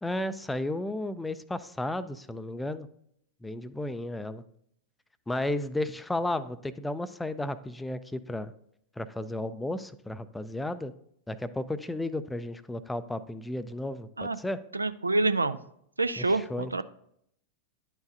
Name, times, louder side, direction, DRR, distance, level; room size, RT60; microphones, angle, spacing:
voice 1, 0.0-2.9 3.4-4.4 5.3-8.5 9.0-10.9 11.3-14.6 16.2-16.8, left 1 dB, 5° left, 14 dB, 0.4 m, -33 dB
voice 2, 14.7-15.6 16.0-16.8, right 2 dB, 80° right, 12 dB, 0.3 m, -27 dB
11.0 x 4.7 x 2.6 m, 0.70 s
figure-of-eight pair, 90°, 0 cm